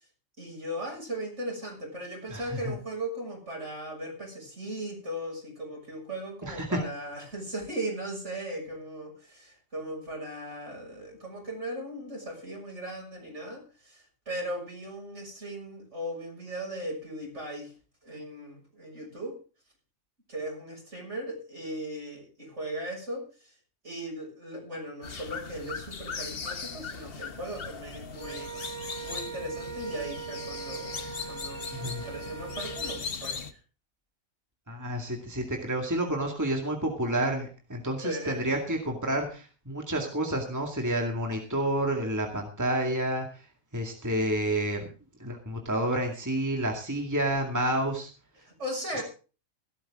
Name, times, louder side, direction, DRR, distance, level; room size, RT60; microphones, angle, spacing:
voice 1, 0.4-17.7 18.0-19.4 20.3-23.5 23.8-28.5 29.0-33.6 38.0-38.5 48.4-49.0, right 1 dB, 55° right, 1 dB, 7.1 m, -38 dB
voice 2, 2.3-2.7 6.4-6.8 31.7-32.0 34.7-43.3 43.7-44.9 45.2-48.1, right 1 dB, 15° right, 2 dB, 2.2 m, -29 dB
sound 1, 25.0-33.5, left 5 dB, 45° left, 1.3 m, -39 dB
Wind instrument woodwind instrument, 28.2-33.0, right 7 dB, 80° right, 3.3 m, -40 dB
17.0 x 13.0 x 3.7 m, 0.35 s
omnidirectional pair, 1.4 m